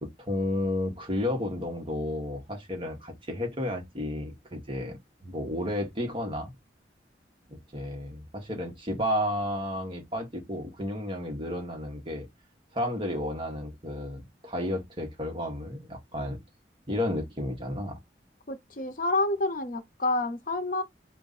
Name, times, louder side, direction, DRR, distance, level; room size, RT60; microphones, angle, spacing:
voice 1, 0.0-6.5 7.5-12.3 12.7-16.4 16.9-18.0, left 1 dB, 30° right, 1.5 m, -32 dB
voice 2, 18.5-20.8, left 2 dB, 50° left, 0.8 m, -28 dB
4.5 x 2.5 x 4.2 m
head